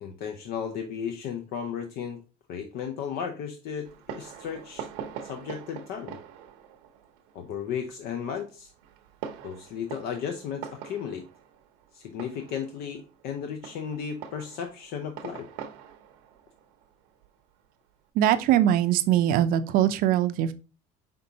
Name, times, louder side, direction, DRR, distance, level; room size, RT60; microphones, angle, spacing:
voice 1, 0.0-2.2 2.5-4.9 5.2-6.2 7.3-8.7 9.4-11.3 11.9-15.5, left 7 dB, 65° left, 6 dB, 0.6 m, -35 dB
Fireworks, 3.8-18.0, right 8 dB, 90° right, 0.8 m, -44 dB
voice 2, 18.2-20.5, right 11 dB, 60° right, 11 dB, 0.5 m, -22 dB
5.4 x 3.6 x 2.7 m, 0.33 s
cardioid pair, 120°, 17 cm